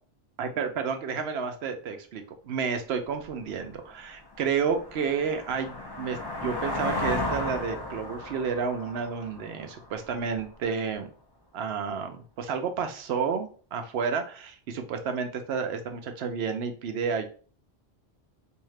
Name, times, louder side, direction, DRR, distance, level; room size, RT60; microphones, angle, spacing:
voice 1, 0.4-11.1 11.5-17.3, right 6 dB, 75° right, 7 dB, 0.8 m, -31 dB
sound 1, 3.3-3.4 3.9-10.4, left 2 dB, 35° left, 0.4 m, -35 dB
3.6 x 2.7 x 3.2 m, 0.40 s
omnidirectional pair, 1.1 m